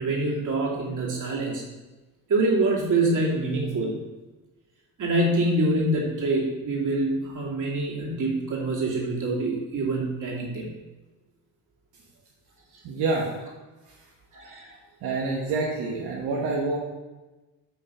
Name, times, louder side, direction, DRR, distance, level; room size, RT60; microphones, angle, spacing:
voice 1, 0.0-1.6 2.3-4.0 5.0-10.7 14.3-14.8, right 2 dB, 50° right, -3 dB, 2.5 m, -25 dB
voice 2, 12.8-13.3 13.9-14.0 15.0-16.8, right 3 dB, 80° right, -3 dB, 1.2 m, -27 dB
8.1 x 3.9 x 5.2 m, 1.1 s
supercardioid pair, 75°, 38 cm